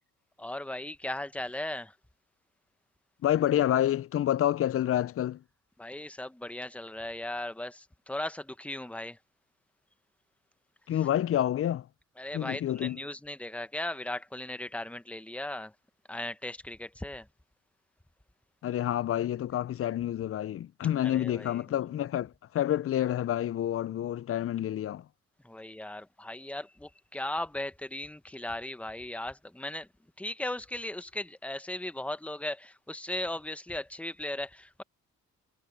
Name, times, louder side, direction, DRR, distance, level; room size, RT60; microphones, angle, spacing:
voice 1, 0.4-2.0 5.8-9.2 12.2-15.7 16.1-17.3 21.0-21.6 25.4-29.9 30.2-34.8, left 1 dB, 5° left, 1.2 m, -37 dB
voice 2, 3.2-5.4 10.9-11.9 12.3-13.0 18.6-25.0, left 11 dB, 45° left, 0.5 m, -28 dB
supercardioid pair, 65°, 30 cm